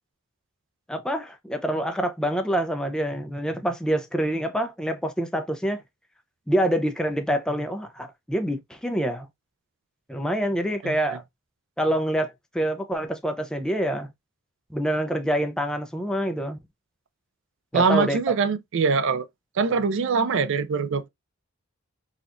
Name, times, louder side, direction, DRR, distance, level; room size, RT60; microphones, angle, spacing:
voice 1, 0.9-5.8 6.5-9.3 10.1-11.2 11.8-14.1 14.7-16.6 17.7-18.3, equal, 5° left, 0.4 m, -26 dB
voice 2, 17.7-19.3 19.6-21.1, right 5 dB, 60° right, 0.4 m, -23 dB
4.2 x 2.4 x 2.4 m
head